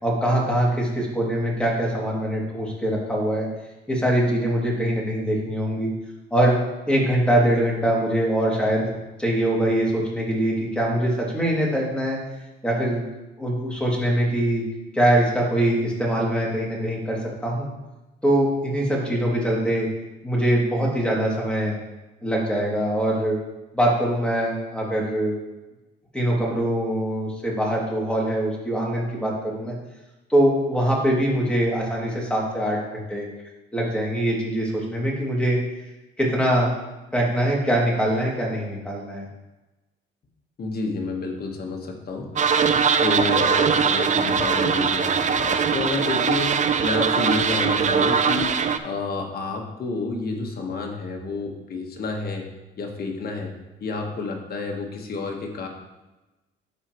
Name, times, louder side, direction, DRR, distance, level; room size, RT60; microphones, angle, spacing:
voice 1, 0.0-3.5 3.9-5.9 6.3-6.6 6.9-8.9 9.2-12.2 12.6-13.0 13.4-14.6 14.9-17.7 18.2-19.9 20.2-21.8 22.2-23.4 23.7-25.4 26.1-29.7 30.3-33.3 33.7-35.6 36.2-36.7 37.1-39.2, right 1 dB, 5° left, -4 dB, 2.6 m, -23 dB
voice 2, 40.6-42.5 43.0-48.6 48.8-52.5 52.8-53.5 53.8-55.7, left 3 dB, 50° left, 1 dB, 1.5 m, -29 dB
sound 1, 42.4-48.8, right 6 dB, 40° right, 0.5 m, -21 dB
12.5 x 4.4 x 3.1 m, 1.0 s
cardioid pair, 90°, 20 cm